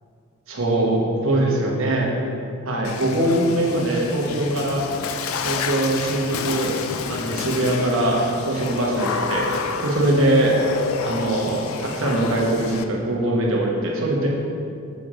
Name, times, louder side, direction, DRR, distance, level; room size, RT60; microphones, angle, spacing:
voice 1, 0.5-2.1 2.7-4.8 5.4-6.7 7.1-9.5 9.8-10.6 11.0-14.3, right 1 dB, 65° right, -2 dB, 1.1 m, -22 dB
Water / Splash splatter, 2.8-12.8, left 5 dB, 75° left, 0.4 m, -30 dB
6.9 x 5.0 x 3.7 m, 2.5 s
head